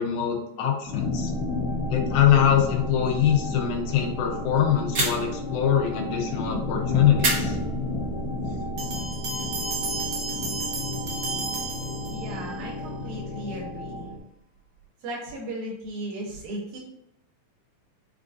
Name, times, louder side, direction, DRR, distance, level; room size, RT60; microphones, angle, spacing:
voice 1, 0.0-1.3 1.9-7.6, left 9 dB, 90° left, 2 dB, 2.1 m, -23 dB
sound 1, 0.9-14.2, left 2 dB, 70° left, 1.9 m, -31 dB
sound 2, 4.9-5.5 7.2-8.2, right 2 dB, 40° right, 1.6 m, -28 dB
Bell, 8.8-12.6, right 4 dB, 65° right, 1.8 m, -33 dB
voice 2, 12.1-14.0 15.0-16.8, right 1 dB, 85° right, -2 dB, 2.4 m, -36 dB
5.4 x 2.5 x 2.5 m, 0.83 s
omnidirectional pair, 3.4 m